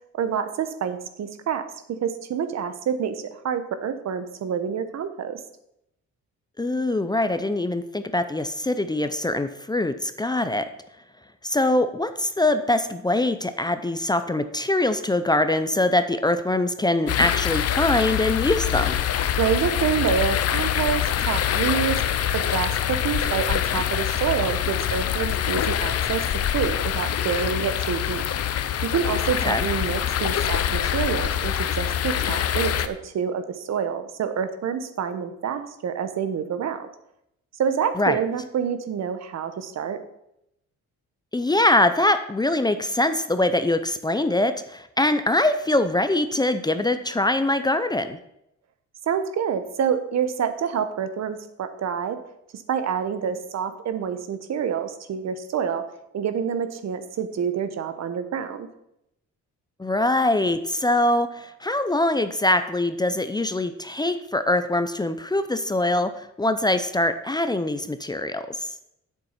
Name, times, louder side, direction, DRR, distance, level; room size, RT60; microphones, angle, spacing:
voice 1, 0.1-1.7 2.0-5.4 19.4-22.0 22.3-26.2 26.5-28.2 28.8-36.9 37.6-40.0 49.1-52.2 52.5-55.8 56.1-58.7, right 7 dB, 60° right, 10 dB, 1.1 m, -27 dB
voice 2, 6.6-10.7 11.4-19.0 29.4-29.7 38.0-38.2 41.3-48.2 59.8-68.7, left 1 dB, 15° left, 10 dB, 0.6 m, -23 dB
sound 1, 17.1-32.9, left 10 dB, 55° left, 0.7 m, -25 dB
8.0 x 7.3 x 5.8 m, 0.80 s
cardioid pair, 90°, 30 cm